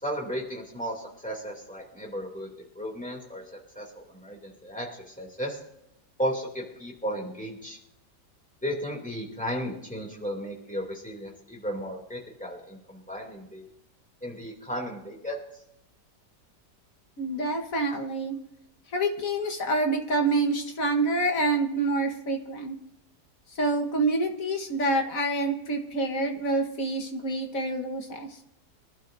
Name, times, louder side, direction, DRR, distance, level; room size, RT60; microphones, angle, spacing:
voice 1, 0.0-2.5 2.7-3.4 3.7-5.6 6.2-7.8 8.6-13.7 14.2-15.4, equal, 5° left, 0 dB, 2.7 m, -34 dB
voice 2, 17.2-18.4 18.9-22.7 23.5-28.3, right 2 dB, 55° left, 3 dB, 1.8 m, -27 dB
24.0 x 11.5 x 2.7 m, 0.81 s
omnidirectional pair, 1.8 m